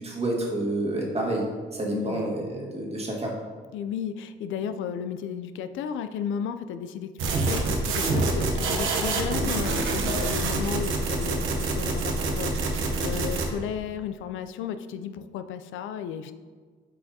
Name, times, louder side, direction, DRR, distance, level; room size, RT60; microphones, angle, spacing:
voice 1, 0.0-3.3, right 1 dB, 30° right, -2 dB, 1.7 m, -29 dB
voice 2, 1.9-2.3 3.7-16.3, left 8 dB, 80° left, 10 dB, 0.4 m, -34 dB
sound 1, 7.2-13.5, right 3 dB, 85° right, 0.9 m, -26 dB
7.9 x 4.6 x 2.8 m, 1.5 s
cardioid pair, 90°, 20 cm